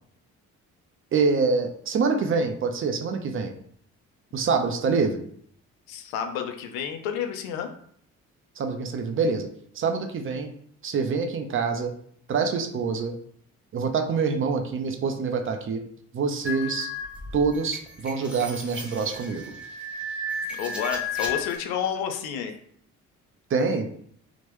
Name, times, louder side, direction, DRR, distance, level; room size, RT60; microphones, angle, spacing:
voice 1, 1.1-3.5 4.3-5.2 8.6-9.5 9.7-10.5 10.8-11.9 12.3-13.1 13.7-15.8 16.1-16.9 17.3-19.5 23.5-23.9, right 4 dB, 30° right, 6 dB, 0.5 m, -25 dB
voice 2, 5.9-7.7 20.5-22.6, left 8 dB, 65° left, 6 dB, 0.5 m, -30 dB
sound 1, 16.4-21.6, left 3 dB, 5° right, 0.8 m, -33 dB
2.9 x 2.1 x 3.0 m, 0.62 s
figure-of-eight pair, 40°, 42 cm